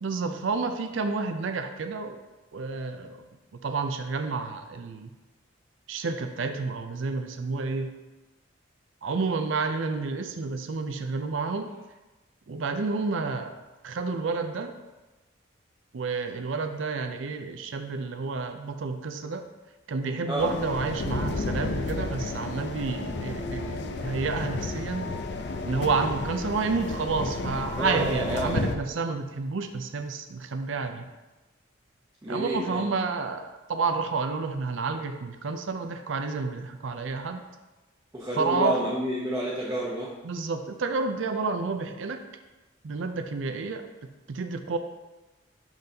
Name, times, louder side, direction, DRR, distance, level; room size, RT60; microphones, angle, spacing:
voice 1, 0.0-2.2 2.5-3.2 3.6-5.1 5.9-7.9 9.0-11.7 12.5-13.6 13.8-14.8 15.9-19.4 19.9-25.1 25.7-31.1 32.3-37.4 38.3-38.8 40.2-42.2 42.8-43.8 44.3-44.8, right 4 dB, 70° right, 7 dB, 0.5 m, -30 dB
sound 1, 20.4-28.8, left 3 dB, 55° left, 0.5 m, -32 dB
voice 2, 27.8-28.6 32.2-32.8 38.1-40.1, equal, 15° right, -7 dB, 0.9 m, -29 dB
11.5 x 4.0 x 2.8 m, 1.1 s
head